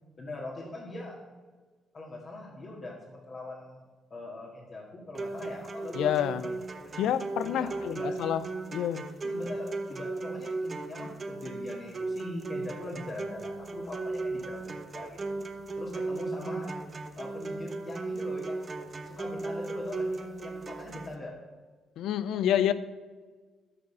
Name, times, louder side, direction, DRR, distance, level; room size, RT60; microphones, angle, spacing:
voice 1, 0.2-1.2 1.9-3.8 4.1-6.5 6.8-7.0 7.4-8.1 9.2-15.3 15.8-16.7 17.2-18.8 19.0-21.3, left 2 dB, 45° left, -5 dB, 1.9 m, -42 dB
sound 1, 5.1-21.1, right 3 dB, 35° right, 1.0 m, -36 dB
voice 2, 5.9-6.4 7.0-8.4 8.7-9.0 22.0-22.7, left 10 dB, 80° left, 14 dB, 0.5 m, -28 dB
9.7 x 5.3 x 6.8 m, 1.4 s
cardioid pair, 90°, 0 cm